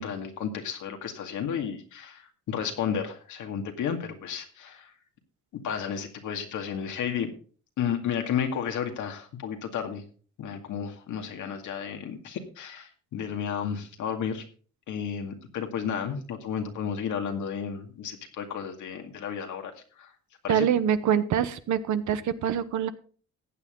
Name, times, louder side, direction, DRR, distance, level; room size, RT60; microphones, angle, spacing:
voice 1, 0.0-4.9 5.5-7.3 7.8-10.0 10.4-14.4 14.9-20.1 20.4-20.7, left 7 dB, 80° left, 4 dB, 2.2 m, -32 dB
voice 2, 20.5-22.9, right 9 dB, 75° right, 12 dB, 1.1 m, -25 dB
15.0 x 8.7 x 3.8 m, 0.41 s
cardioid pair, 90°, 30 cm